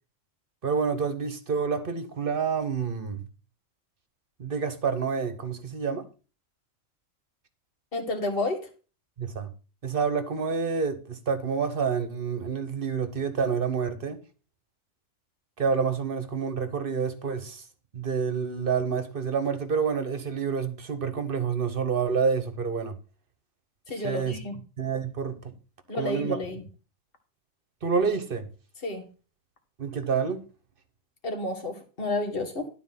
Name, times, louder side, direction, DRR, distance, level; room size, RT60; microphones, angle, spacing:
voice 1, 0.6-3.2 4.4-6.0 9.2-9.5 9.8-14.2 15.6-17.6 17.9-23.0 24.0-24.4 24.8-25.5 25.9-26.4 27.8-28.5 29.8-30.5, right 5 dB, 45° right, 1.2 m, -28 dB
voice 2, 7.9-8.7 23.9-24.6 25.9-26.6 28.8-29.0 31.2-32.7, left 2 dB, 45° left, 1.9 m, -30 dB
12.0 x 4.3 x 5.8 m
omnidirectional pair, 1.3 m